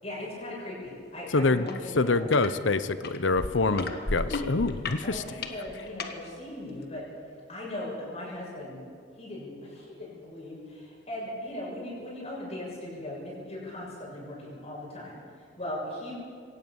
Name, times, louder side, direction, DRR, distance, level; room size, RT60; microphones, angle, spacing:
voice 1, 0.0-2.7 3.7-4.1 5.0-7.0 7.5-8.8 9.2-15.2 15.6-16.2, left 1 dB, 35° left, -5 dB, 7.1 m, -38 dB
voice 2, 1.3-1.7 2.0-5.2, left 3 dB, 75° left, 13 dB, 0.9 m, -25 dB
sound 1, 1.7-1.8 2.1-2.5 3.0-6.1 6.8-6.9, left 3 dB, 55° left, 1.6 m, -34 dB
23.5 x 18.0 x 7.2 m, 2.1 s
head